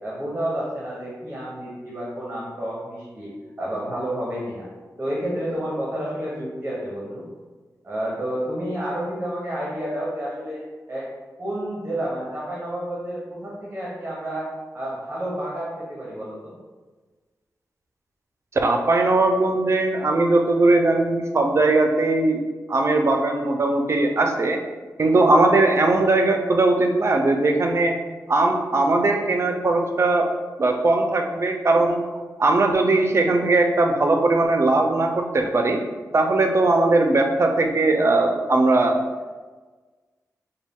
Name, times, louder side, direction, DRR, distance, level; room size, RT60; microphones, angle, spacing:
voice 1, 0.0-3.3 3.6-4.6 5.0-7.2 7.8-10.6 10.9-11.1 11.4-14.5 14.7-16.5, right 1 dB, 25° right, -5 dB, 1.0 m, -30 dB
voice 2, 18.6-22.4 22.7-24.6 25.0-28.0 28.3-30.3 30.6-32.0 32.4-35.8 36.1-39.0, right 2 dB, 45° right, 3 dB, 0.5 m, -19 dB
5.1 x 2.2 x 3.6 m, 1.3 s
wide cardioid pair, 85°, 6 cm